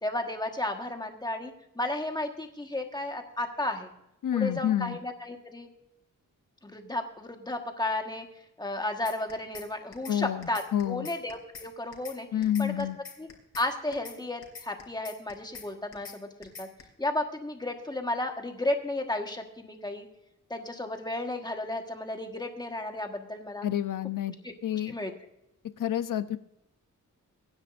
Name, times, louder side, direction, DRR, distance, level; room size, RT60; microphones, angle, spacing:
voice 1, 0.0-3.9 4.3-5.7 6.6-8.3 8.6-12.3 12.6-12.9 13.2-13.3 13.5-16.7 17.0-20.1 20.5-23.7 24.4-24.5 24.9-25.1, left 2 dB, 15° left, 4 dB, 1.5 m, -33 dB
voice 2, 4.2-5.0 10.1-11.1 12.3-13.0 23.6-24.3 24.6-25.0 25.8-26.4, left 10 dB, 70° left, 12 dB, 0.8 m, -28 dB
sound 1, 9.1-9.7 9.9-10.2 10.4-11.7 11.9-12.2 12.4-13.7 13.9-14.2 14.4-15.7 15.9-16.2 16.4-16.8, left 5 dB, 50° left, 3.2 m, -44 dB
24.0 x 9.8 x 2.6 m, 0.84 s
wide cardioid pair, 150°, 33 cm